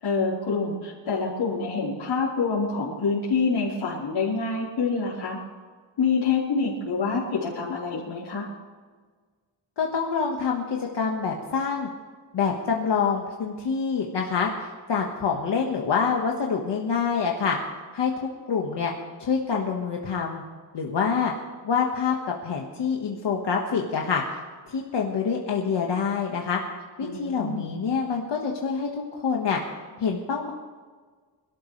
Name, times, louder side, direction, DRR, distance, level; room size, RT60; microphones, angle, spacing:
voice 1, 0.0-5.4 6.0-8.5 27.0-27.7, left 4 dB, 80° left, -9 dB, 4.5 m, -26 dB
voice 2, 9.8-11.9 12.3-17.6 17.9-18.9 19.2-20.4 20.7-21.3 21.6-22.1 22.4-24.2 24.7-26.6 27.0-29.6 30.0-30.5, left 6 dB, 65° left, 0 dB, 1.6 m, -26 dB
26.5 x 13.0 x 3.3 m, 1.5 s
wide cardioid pair, 170°, 45 cm